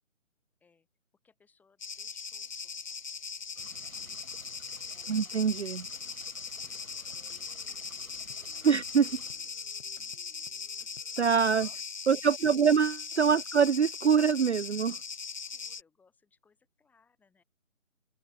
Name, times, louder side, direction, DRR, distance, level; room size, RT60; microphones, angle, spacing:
voice 1, 1.2-2.8 3.8-4.2 4.9-5.5 6.2-7.8 8.2-8.7 9.0-9.1 9.4-9.5 10.8-11.3 11.6-11.8 15.2-17.4, left 5 dB, 5° left, 6.1 m, -67 dB
sound 1, 1.8-15.8, left 5 dB, 35° left, 1.0 m, -40 dB
sound 2, 3.6-9.3, right 4 dB, 75° right, 2.9 m, -54 dB
voice 2, 5.1-5.8 8.6-9.1 11.2-11.7 12.1-15.0, right 6 dB, 55° right, 0.5 m, -24 dB
sound 3, 6.6-12.0, left 4 dB, 60° left, 3.2 m, -61 dB
figure-of-eight pair, 155°, 42 cm